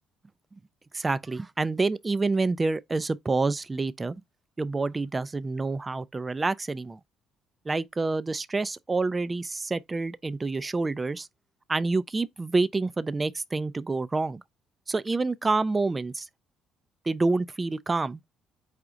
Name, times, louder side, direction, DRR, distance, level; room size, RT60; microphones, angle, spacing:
voice 1, 0.9-4.1 4.6-7.0 7.7-11.3 11.7-14.4 14.9-16.3 17.1-18.2, right 3 dB, 25° right, 0.3 m, -27 dB
4.9 x 2.4 x 3.8 m
supercardioid pair, 70°, 0 cm